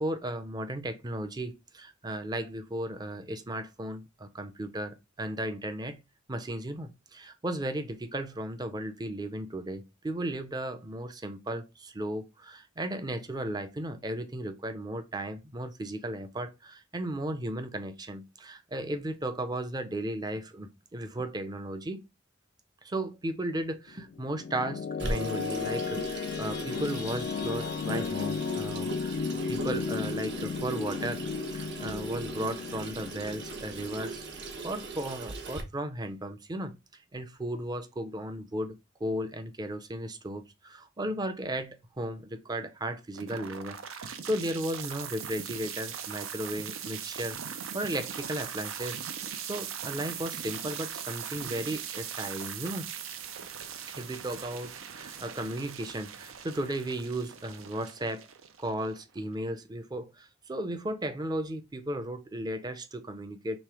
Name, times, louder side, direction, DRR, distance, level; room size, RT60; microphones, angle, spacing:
voice 1, 0.0-6.0 6.3-22.0 22.8-29.2 29.5-31.3 31.5-34.2 34.6-36.7 37.1-47.4 47.7-49.0 49.4-52.9 54.0-58.3 58.6-63.6, right 1 dB, 20° right, 0.5 m, -35 dB
sound 1, 23.9-34.9, left 5 dB, 55° left, 0.3 m, -35 dB
Water tap faucet / Sink (filling or washing), 25.0-35.6, right 3 dB, 60° right, 0.9 m, -39 dB
sound 2, 43.2-59.2, right 8 dB, 85° right, 0.6 m, -40 dB
3.3 x 3.1 x 4.7 m
head